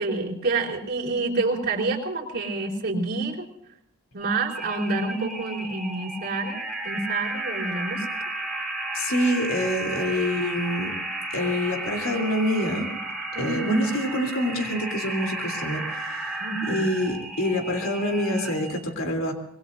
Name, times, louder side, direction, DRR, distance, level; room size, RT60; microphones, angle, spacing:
voice 1, 0.0-3.5 4.1-8.1 13.3-13.9 16.4-16.9, right 3 dB, 45° right, -1 dB, 4.0 m, -28 dB
sound 1, 4.2-18.8, right 2 dB, ahead, 3.3 m, -33 dB
voice 2, 8.9-10.9 11.3-12.9 13.4-16.4 16.7-19.3, left 1 dB, 70° left, 4 dB, 3.2 m, -26 dB
25.5 x 21.5 x 2.6 m, 0.77 s
head